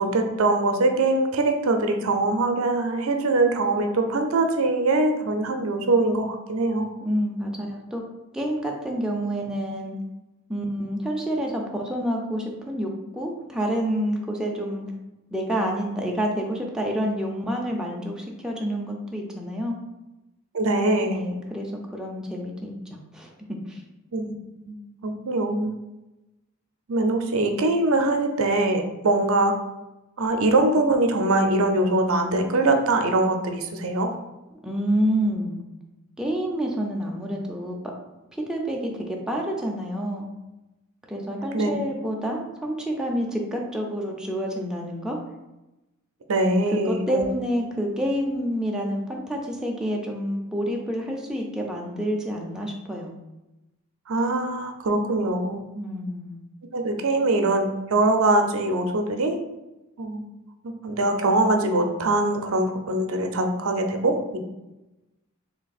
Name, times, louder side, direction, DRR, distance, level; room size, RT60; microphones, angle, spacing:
voice 1, 0.0-6.9 20.5-21.2 24.1-24.3 24.6-24.8 25.0-25.8 26.9-29.6 30.2-34.2 41.5-41.7 46.3-47.2 54.1-55.6 56.7-59.4 60.0-60.2 60.6-64.4, right 2 dB, 70° right, 5 dB, 0.5 m, -22 dB
voice 2, 7.0-8.0 8.3-10.0 10.5-14.9 15.3-19.8 21.0-23.3 23.7-23.8 34.6-35.6 36.2-37.8 38.3-40.3 41.1-45.2 46.7-53.1 55.7-56.4, equal, 5° right, -1 dB, 0.5 m, -28 dB
3.3 x 2.8 x 4.0 m, 0.99 s
head